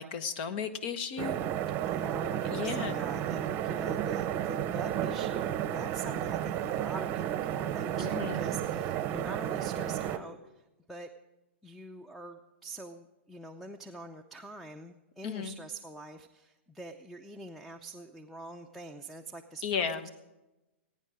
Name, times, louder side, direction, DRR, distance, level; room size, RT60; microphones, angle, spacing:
voice 1, 0.0-1.4 2.4-3.0 8.0-8.4 15.2-15.5 19.6-20.1, left 6 dB, 50° left, 12 dB, 1.2 m, -34 dB
sound 1, 1.2-10.2, right 11 dB, 35° right, 0.8 m, -32 dB
voice 2, 1.9-11.1 11.6-20.1, right 2 dB, ahead, 9 dB, 0.6 m, -45 dB
20.5 x 9.3 x 5.0 m, 1.0 s
hypercardioid pair, 115°, 7 cm